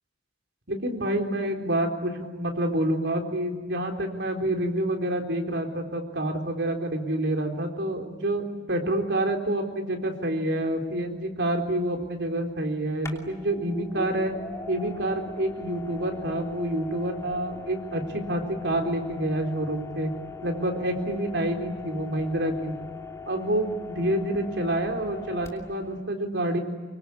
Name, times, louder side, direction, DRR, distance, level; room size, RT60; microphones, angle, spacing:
voice 1, 0.7-14.3 14.7-20.1 20.4-22.7 23.3-26.6, right 1 dB, 80° right, 3 dB, 3.9 m, -28 dB
sound 1, 10.6-10.7 13.0-26.0, left 4 dB, 15° left, 2.9 m, -40 dB
25.0 x 24.0 x 9.7 m, 1.3 s
head